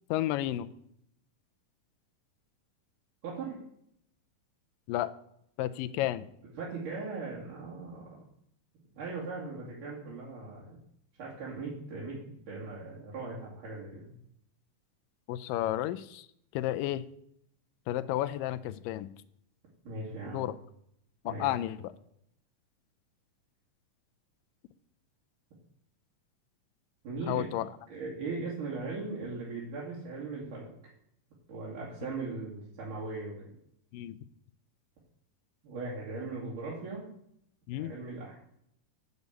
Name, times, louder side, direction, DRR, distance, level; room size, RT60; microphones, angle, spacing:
voice 1, 0.1-0.7 4.9-5.1 5.6-6.3 15.3-16.2 16.5-17.0 17.9-19.1 20.3-20.6 21.3-21.9 27.3-27.7 32.1-32.2 33.9-34.2 37.7-37.9, left 14 dB, 85° left, 13 dB, 2.2 m, -32 dB
voice 2, 3.2-3.6 6.5-8.1 9.0-10.7 11.2-12.2 12.5-14.1 19.8-20.5 21.3-21.6 27.0-27.5 27.9-30.7 31.5-33.5 35.6-37.1 37.7-38.4, right 3 dB, 70° right, -6 dB, 4.0 m, -39 dB
9.8 x 5.3 x 8.2 m, 0.72 s
omnidirectional pair, 3.8 m